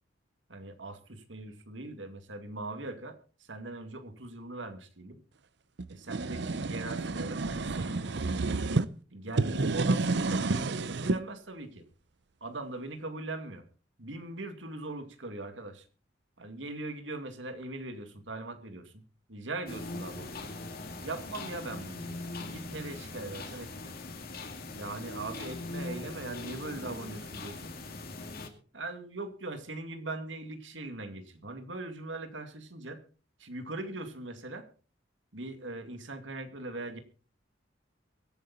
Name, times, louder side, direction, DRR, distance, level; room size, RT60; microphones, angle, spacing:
voice 1, 0.5-5.2 5.9-8.5 9.1-11.8 12.4-13.6 14.0-15.8 16.4-19.0 19.3-20.5 21.0-24.0 24.8-27.7 28.7-33.0 33.4-34.7 35.3-37.0, right 2 dB, 85° right, 7 dB, 2.3 m, -40 dB
sound 1, 5.8-8.9 9.3-11.2, right 3 dB, 65° right, 0.7 m, -30 dB
sound 2, 19.7-28.5, left 2 dB, 55° left, 2.3 m, -41 dB
23.0 x 9.0 x 4.1 m, 0.38 s
head